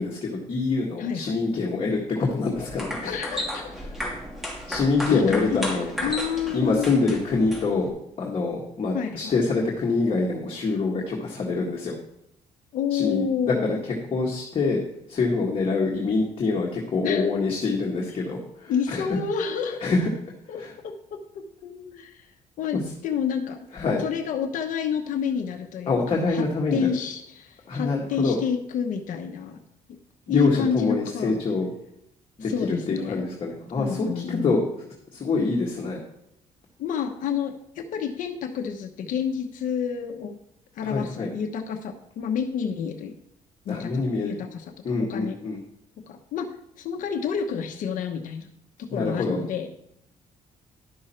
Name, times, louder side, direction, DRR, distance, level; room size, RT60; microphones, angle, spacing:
voice 1, 0.0-3.2 4.7-5.9 6.5-12.0 12.9-13.8 14.1-14.8 15.1-19.2 19.8-20.1 20.6-20.7 22.7-22.8 23.7-24.1 25.9-26.9 27.7-28.4 30.3-31.7 32.4-34.6 35.1-36.0 40.8-41.3 43.7-44.4 44.8-45.6 48.9-49.4, left 3 dB, 45° left, -2 dB, 1.8 m, -25 dB
voice 2, 1.0-1.4 3.0-3.7 5.1-5.6 6.0-7.1 8.9-9.4 12.7-13.8 17.0-17.3 18.7-20.0 20.5-22.3 22.6-23.7 24.0-26.4 26.7-29.6 29.9-30.0 30.3-31.3 32.4-33.3 33.8-34.5 36.8-40.4 40.7-43.1 43.6-45.4 46.1-46.5 46.8-48.5 48.8-49.7, left 7 dB, 75° left, 5 dB, 1.0 m, -29 dB
sound 1, 2.5-7.9, equal, 5° right, 2.7 m, -34 dB
11.5 x 6.3 x 4.4 m, 0.75 s
cardioid pair, 120°, 14 cm